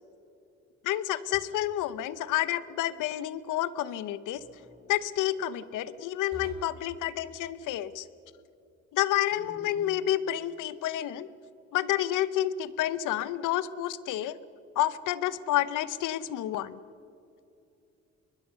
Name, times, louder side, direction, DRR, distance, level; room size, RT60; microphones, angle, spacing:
voice 1, 0.8-4.4 4.9-8.1 8.9-11.3 11.7-14.4 14.8-16.8, left 12 dB, 90° left, 16 dB, 0.9 m, -29 dB
sound 1, 1.3-1.8 4.3-4.8 6.3-6.9 9.3-10.0, right 2 dB, 20° right, 5.1 m, -48 dB
23.5 x 20.5 x 6.9 m, 2.7 s
cardioid pair, 90°, 30 cm